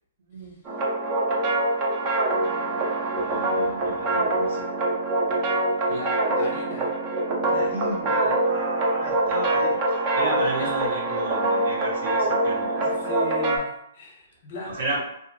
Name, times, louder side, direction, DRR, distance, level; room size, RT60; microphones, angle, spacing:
voice 1, 0.2-0.6 3.1-4.7 7.5-13.1 14.6-15.0, right 1 dB, 65° right, -4 dB, 1.0 m, -34 dB
sound 1, 0.6-13.6, right 2 dB, 25° right, 0.5 m, -24 dB
voice 2, 5.9-6.9 10.6-10.7 12.6-15.0, left 1 dB, 35° left, -2 dB, 0.7 m, -38 dB
2.6 x 2.4 x 2.6 m, 0.75 s
hypercardioid pair, 165°, 0 cm